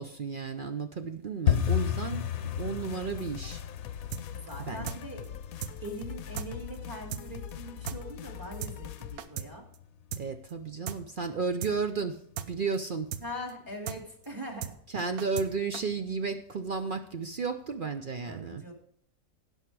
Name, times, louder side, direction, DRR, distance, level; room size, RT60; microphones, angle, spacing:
voice 1, 0.0-2.3 2.6-3.6 4.6-4.9 10.2-12.2 12.5-13.1 14.9-18.6, right 4 dB, 55° right, 7 dB, 0.6 m, -33 dB
sound 1, 1.5-12.2 12.4-13.1 13.4-13.7 14.0-14.3 14.6-14.7 15.2-15.8 16.1-16.2 16.7-16.8, left 10 dB, 60° left, 0.9 m, -35 dB
sound 2, 2.5-9.2, left 9 dB, 75° left, 1.0 m, -42 dB
sound 3, 4.1-4.2 4.5-4.6 4.9-5.0 5.2-5.3 5.6-5.7 6.0-6.1 6.4-6.5 6.7-6.8 7.1-7.2 7.5-7.6 7.9-8.0 8.2-8.3 8.6-8.7 9.0-9.5 9.7-9.8 10.1-10.2 10.5-10.6 10.9-11.0 11.2-11.3 11.6-11.7 12.0-12.1 12.4-12.5 12.7-12.8 13.1-13.2 13.5-13.6 13.9-14.0 14.2-14.3 14.6-14.7 15.0-15.5 15.7-15.8, right 10 dB, 75° right, 1.2 m, -36 dB
voice 2, 4.3-5.3 5.8-9.6 13.2-14.7 18.2-18.7, equal, 15° right, 2 dB, 2.3 m, -42 dB
16.5 x 5.5 x 4.7 m, 0.67 s
omnidirectional pair, 1.6 m